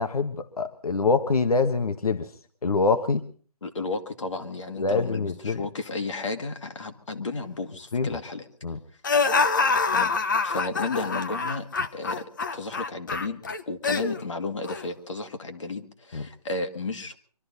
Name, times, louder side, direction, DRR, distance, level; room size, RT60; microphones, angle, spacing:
voice 1, 0.0-2.3 2.6-3.2 4.8-5.6 7.9-8.1 8.6-8.8 16.1-16.3, left 4 dB, 65° left, 9 dB, 1.3 m, -25 dB
voice 2, 3.6-8.5 9.9-10.1 10.4-12.2 12.5-17.2, left 3 dB, 50° left, 5 dB, 1.8 m, -33 dB
sound 1, 9.0-14.2 14.6-14.8, left 4 dB, 30° left, 0.9 m, -25 dB
25.0 x 13.0 x 4.1 m, 0.42 s
figure-of-eight pair, 170°, 20 cm